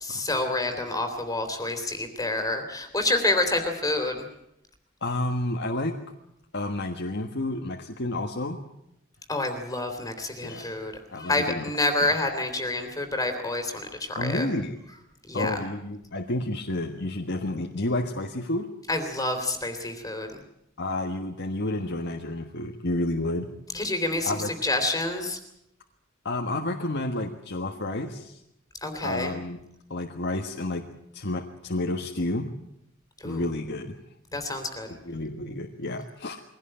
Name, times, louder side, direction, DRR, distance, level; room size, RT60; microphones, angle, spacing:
voice 1, 0.0-4.2 9.3-10.9 11.2-14.5 15.3-15.6 18.9-20.4 23.7-25.4 28.8-29.3 33.2-33.4 34.3-34.9, left 2 dB, 20° left, 6 dB, 3.2 m, -28 dB
voice 2, 5.0-6.0 6.5-8.6 10.4-10.7 11.1-11.7 12.0-12.1 14.1-14.8 15.3-18.7 20.8-23.5 23.8-23.9 24.2-24.5 26.2-28.4 29.0-29.6 29.9-30.8 31.1-32.5 33.2-34.0 34.3-34.5 34.9-36.4, left 2 dB, 60° left, 2 dB, 1.6 m, -30 dB
22.5 x 17.5 x 9.0 m, 0.81 s
head